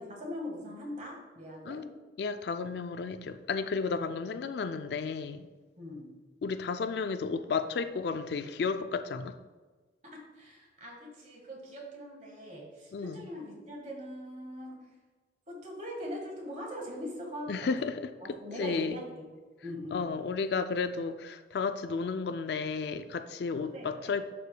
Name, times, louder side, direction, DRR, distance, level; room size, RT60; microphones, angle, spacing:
voice 1, 0.0-1.9 5.8-6.1 10.0-14.9 15.5-17.5 17.8-17.9 18.2-19.3 19.6-20.0 23.6-24.1, equal, 40° right, -1 dB, 1.6 m, -41 dB
voice 2, 2.2-5.5 6.4-9.3 12.9-13.3 17.5-19.0 19.9-24.3, left 5 dB, 60° left, 10 dB, 0.3 m, -33 dB
11.0 x 5.0 x 2.2 m, 1.3 s
head